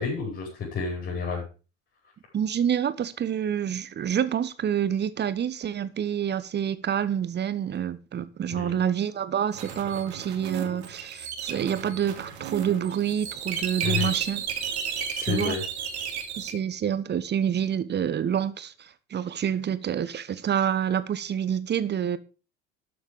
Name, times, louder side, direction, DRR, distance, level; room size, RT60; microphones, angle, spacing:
voice 1, 0.0-1.4 8.5-8.8 13.8-14.1 15.1-15.6, left 5 dB, 35° left, 5.5 m, -30 dB
voice 2, 2.3-14.4 15.2-15.5 16.4-22.2, right 9 dB, 30° right, 1.2 m, -27 dB
sound 1, 9.5-16.5, right 8 dB, 65° right, 2.1 m, -33 dB
12.5 x 7.2 x 5.1 m
figure-of-eight pair, 65°, 35 cm